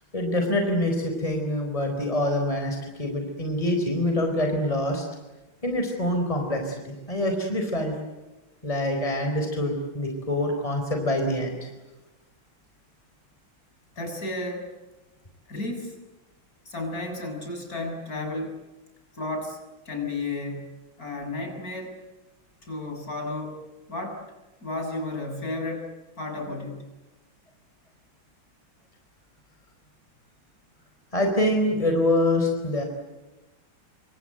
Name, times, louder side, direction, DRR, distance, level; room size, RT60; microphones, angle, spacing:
voice 1, 0.1-5.0 5.6-6.8 7.1-7.9 8.6-11.7 31.1-32.8, left 1 dB, 15° left, 4 dB, 4.6 m, -25 dB
voice 2, 14.0-14.7 15.5-16.0 16.7-18.6 19.1-20.7 21.0-22.0 22.6-23.6 23.9-24.2 24.6-26.9, left 2 dB, 45° left, 4 dB, 7.3 m, -33 dB
29.0 x 25.5 x 8.1 m, 1.1 s
omnidirectional pair, 2.2 m